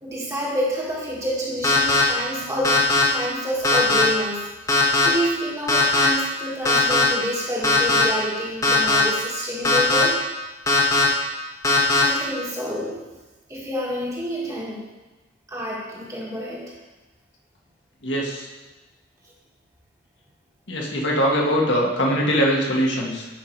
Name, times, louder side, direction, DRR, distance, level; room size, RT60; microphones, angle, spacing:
voice 1, 0.0-2.8 3.1-10.2 12.0-13.0 13.5-14.8 15.5-16.6, equal, 15° right, -5 dB, 1.7 m, -28 dB
sound 1, 1.6-2.0 2.6-3.0 3.6-4.0 4.7-5.1 5.7-6.1 6.6-7.0 7.6-8.0 8.6-9.0 9.6-10.0 10.7-11.0 11.6-12.0, left 2 dB, 15° left, 1.2 m, -18 dB
voice 2, 18.0-18.5 20.7-23.3, equal, 70° left, -2 dB, 1.6 m, -22 dB
9.5 x 5.6 x 4.6 m, 1.2 s
head